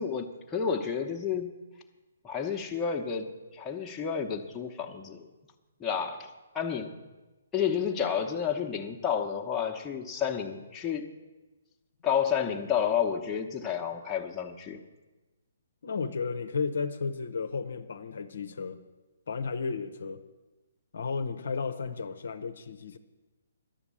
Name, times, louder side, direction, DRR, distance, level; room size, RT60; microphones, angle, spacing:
voice 1, 0.0-1.5 2.2-3.3 3.5-5.3 5.8-6.3 6.5-6.9 7.5-11.1 12.0-14.8, left 7 dB, 15° left, 0 dB, 0.9 m, -30 dB
voice 2, 15.8-18.8 19.3-20.2 20.9-23.0, left 5 dB, 60° left, 8 dB, 0.7 m, -33 dB
11.5 x 7.1 x 8.5 m, 1.2 s
figure-of-eight pair, 130°, 0 cm